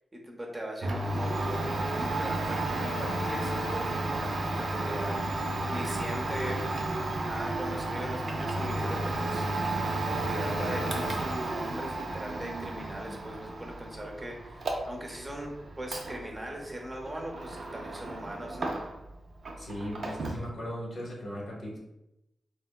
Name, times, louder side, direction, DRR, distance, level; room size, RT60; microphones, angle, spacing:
voice 1, 0.1-5.2 5.7-6.6 7.2-9.5 10.0-18.7, equal, 25° right, 0 dB, 0.7 m, -39 dB
Domestic sounds home sounds, 0.8-19.1 19.4-20.5, right 2 dB, 70° right, 0.4 m, -33 dB
voice 2, 19.6-21.8, equal, 70° left, -3 dB, 1.0 m, -38 dB
3.4 x 2.1 x 2.2 m, 0.89 s
cardioid pair, 65°, 0 cm